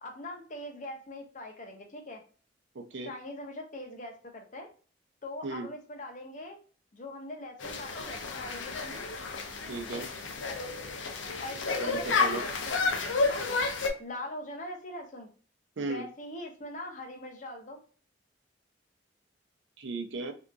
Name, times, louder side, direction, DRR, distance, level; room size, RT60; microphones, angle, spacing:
voice 1, 0.0-2.2 3.1-4.7 5.2-6.6 6.9-9.0 11.4-13.2 14.0-15.3 15.8-17.8, left 1 dB, 40° left, 2 dB, 0.7 m, -42 dB
voice 2, 2.7-3.1 5.4-5.7 9.7-10.1 11.8-12.5 15.8-16.0 19.8-20.3, right 3 dB, 70° right, 5 dB, 0.5 m, -36 dB
sound 1, 7.6-13.9, left 4 dB, 80° left, 0.5 m, -31 dB
2.7 x 2.4 x 2.3 m, 0.40 s
head